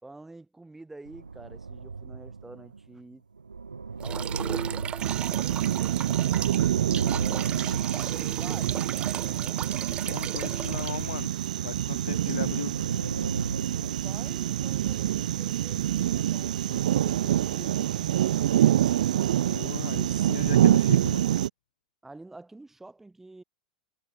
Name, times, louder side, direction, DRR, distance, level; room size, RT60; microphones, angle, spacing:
voice 1, 0.0-3.2 4.0-6.5 6.8-7.5 7.9-9.7 13.8-18.8 22.0-23.4, right 2 dB, 5° right, 6.4 m, -48 dB
sound 1, 1.1-9.0 9.6-12.0 12.5-15.1 15.7-17.6, right 4 dB, 85° right, 0.9 m, -37 dB
sound 2, 4.0-11.2, right 9 dB, 25° right, 0.5 m, -37 dB
sound 3, 5.0-21.5, right 12 dB, 65° right, 1.5 m, -26 dB
voice 2, 10.0-11.3 11.6-12.8 19.4-21.3, left 11 dB, 65° left, 1.3 m, -37 dB
figure-of-eight pair, 95°, 4 cm